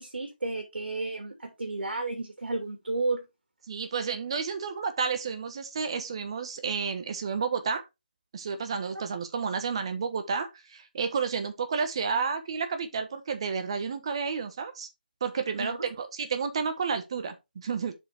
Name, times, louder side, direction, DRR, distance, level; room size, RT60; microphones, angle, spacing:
voice 1, 0.0-3.2 15.6-15.8, right 3 dB, 90° right, 2.6 m, -32 dB
voice 2, 3.7-7.8 8.3-14.9 15.2-18.0, right 5 dB, 30° right, 1.3 m, -31 dB
7.2 x 5.0 x 3.4 m
hypercardioid pair, 170°, 6 cm